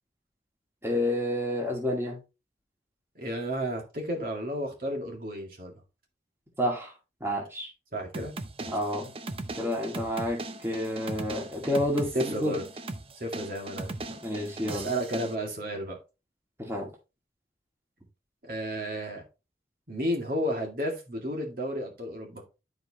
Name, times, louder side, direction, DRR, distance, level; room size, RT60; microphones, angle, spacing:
voice 1, 0.8-2.2 6.6-6.9 7.2-7.7 8.7-9.1 9.5-12.6 14.2-14.9 16.6-16.9, left 1 dB, 15° right, 2.0 m, -29 dB
voice 2, 3.2-5.7 7.9-8.3 8.6-8.8 12.1-12.7 13.1-14.0 14.7-16.0 18.5-19.2 19.9-22.4, equal, 55° right, 2.2 m, -32 dB
sound 1, 8.1-15.3, right 2 dB, 30° right, 0.6 m, -39 dB
11.0 x 4.9 x 2.9 m
head